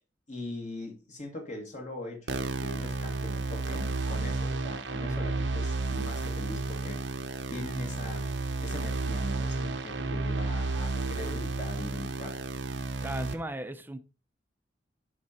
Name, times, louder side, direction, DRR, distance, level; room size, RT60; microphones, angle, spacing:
voice 1, 0.3-7.1 7.5-8.3 8.6-12.4, left 2 dB, 40° left, 1.8 m, -41 dB
sound 1, 2.3-13.3, right 3 dB, 80° right, 1.0 m, -32 dB
voice 2, 13.0-14.0, right 1 dB, 10° right, 0.6 m, -36 dB
10.5 x 3.8 x 4.3 m
head